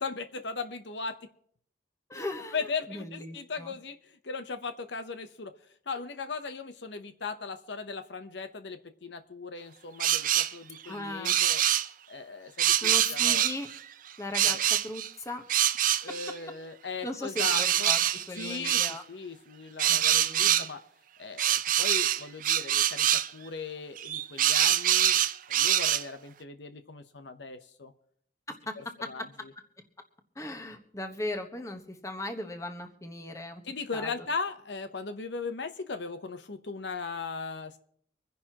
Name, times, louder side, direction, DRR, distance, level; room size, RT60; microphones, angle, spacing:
voice 1, 0.0-1.3 2.1-2.2 2.5-5.5 5.9-11.6 12.1-13.5 14.4-14.6 16.0-17.9 18.3-20.8 21.2-25.2 25.5-27.9 28.8-29.5 33.6-37.8, left 4 dB, 70° left, 9 dB, 0.8 m, -38 dB
voice 2, 2.1-2.6 2.9-3.7 10.8-11.3 12.8-13.7 14.2-14.6 14.8-15.4 17.0-18.0 18.3-19.0 19.9-20.7 28.5-28.7 29.0-29.1 30.4-33.6 33.9-34.1, left 1 dB, 15° left, 5 dB, 1.2 m, -37 dB
sound 1, 10.0-10.5 11.2-11.9 12.6-13.8 14.3-15.1 15.5-16.3 17.4-19.0 19.8-20.7 21.4-23.3 24.0-26.0, right 11 dB, 45° right, 0.5 m, -25 dB
25.0 x 10.5 x 2.9 m, 0.63 s
head